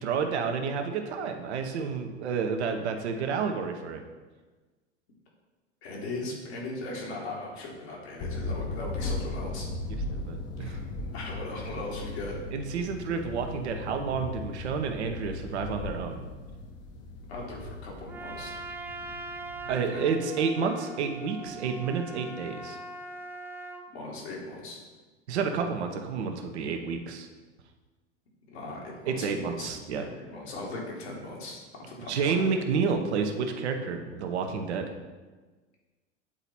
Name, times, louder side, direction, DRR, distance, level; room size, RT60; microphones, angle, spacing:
voice 1, 0.0-4.0 9.9-10.8 12.5-16.2 19.7-22.8 25.3-27.3 29.1-30.0 32.1-34.9, right 5 dB, 70° right, 5 dB, 0.9 m, -30 dB
voice 2, 5.8-9.7 10.6-10.8 11.1-12.4 17.3-18.5 19.9-20.0 23.9-24.8 28.5-29.7 30.0-31.6 31.9-32.6, left 2 dB, 70° left, -2 dB, 2.3 m, -38 dB
sound 1, 8.2-19.9, left 2 dB, 45° left, 1.0 m, -37 dB
Trumpet, 18.1-23.9, right 2 dB, 5° right, 0.5 m, -41 dB
8.7 x 4.0 x 4.3 m, 1.3 s
figure-of-eight pair, 85°, 35 cm